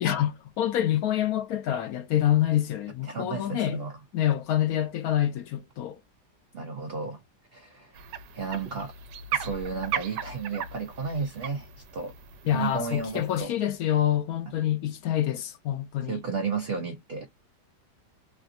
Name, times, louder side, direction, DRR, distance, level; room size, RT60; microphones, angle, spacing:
voice 1, 0.0-3.8 4.1-6.0 12.4-16.2, left 11 dB, 70° left, 1.0 m, -26 dB
voice 2, 3.0-3.9 6.5-7.2 7.5-8.0 8.3-8.9 9.3-12.1 12.5-13.5 16.1-17.3, right 5 dB, 70° right, 0.5 m, -33 dB
sound 1, 7.9-13.4, right 8 dB, 90° right, 1.2 m, -37 dB
3.3 x 2.5 x 2.5 m
omnidirectional pair, 1.8 m